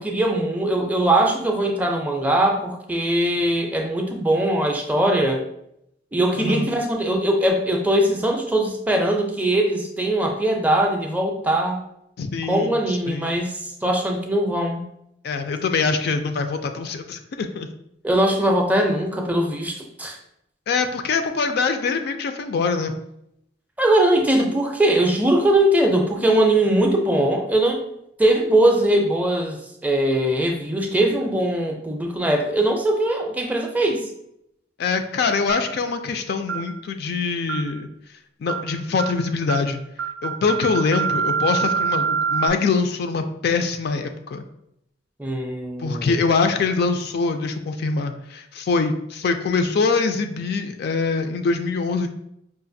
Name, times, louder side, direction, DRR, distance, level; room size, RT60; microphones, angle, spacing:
voice 1, 0.0-5.4 6.1-11.8 12.5-14.8 18.0-20.2 23.8-27.8 28.2-34.1 45.2-46.2, right 1 dB, 10° right, 2 dB, 0.4 m, -21 dB
voice 2, 6.3-6.7 12.2-12.8 13.1-13.3 15.2-17.7 20.7-22.9 34.8-37.9 38.4-39.8 40.2-44.4 45.8-52.1, left 4 dB, 60° left, 7 dB, 0.3 m, -24 dB
sound 1, 35.5-35.8 36.5-36.7 37.5-37.8 38.5-38.7 39.0-39.2 39.5-39.7 40.0-42.5, right 6 dB, 85° right, 0.4 m, -25 dB
4.8 x 2.5 x 2.6 m, 0.77 s
head